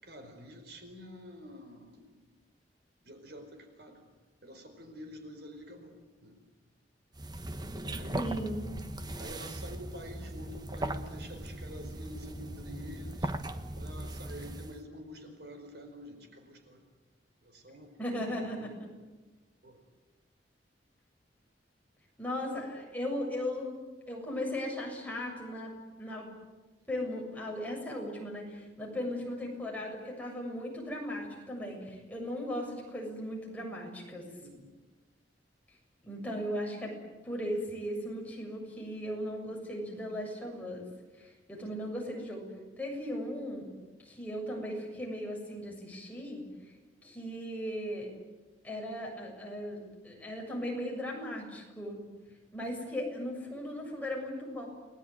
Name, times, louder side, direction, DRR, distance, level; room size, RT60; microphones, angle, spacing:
voice 1, 0.0-2.4 3.0-4.0 4.4-6.4 7.7-8.4 9.2-13.5 13.8-16.8 17.4-18.3 18.6-18.8 19.6-19.8 34.4-34.7 41.5-41.7, equal, 65° right, 5 dB, 4.8 m, -48 dB
sound 1, 7.1-14.8, right 1 dB, 25° right, 1.3 m, -39 dB
voice 2, 8.1-8.6 18.0-18.9 22.2-23.8 24.1-26.3 26.9-34.3 36.0-36.9 37.2-40.8 41.1-43.7 44.0-46.4 47.0-48.1 48.6-49.8 50.0-52.0 52.5-54.7, equal, 10° left, -1 dB, 7.3 m, -37 dB
30.0 x 20.5 x 9.3 m, 1.2 s
head